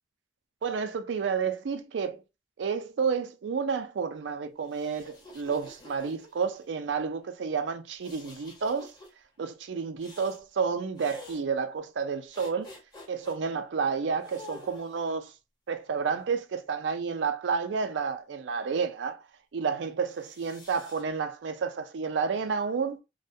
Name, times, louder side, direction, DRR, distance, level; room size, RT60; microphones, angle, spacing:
voice 1, 0.6-2.2 2.6-8.9 9.4-12.7 13.1-15.3 15.7-19.2 19.5-23.0, right 5 dB, 80° right, 0.4 m, -30 dB
sound 1, 4.6-6.6 8.0-9.1 10.0-10.4 11.0-11.4 12.3-13.4 14.2-15.1 15.9-17.0 20.1-21.0, left 2 dB, 25° left, 0.9 m, -49 dB
2.3 x 2.1 x 2.6 m
head